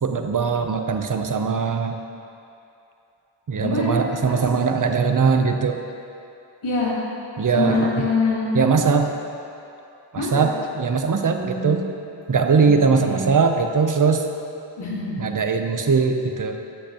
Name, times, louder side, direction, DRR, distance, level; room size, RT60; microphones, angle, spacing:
voice 1, 0.0-2.0 3.5-5.8 7.4-8.0 8.5-9.1 10.1-11.8 12.3-14.2 15.2-16.6, right 5 dB, 40° right, 5 dB, 0.6 m, -20 dB
voice 2, 3.6-4.4 6.6-6.9 7.5-8.5 10.2-10.4 11.2-11.8 12.6-13.2 14.8-15.2, left 3 dB, 90° left, -6 dB, 1.6 m, -25 dB
8.5 x 7.8 x 2.9 m, 2.8 s
wide cardioid pair, 40°, 47 cm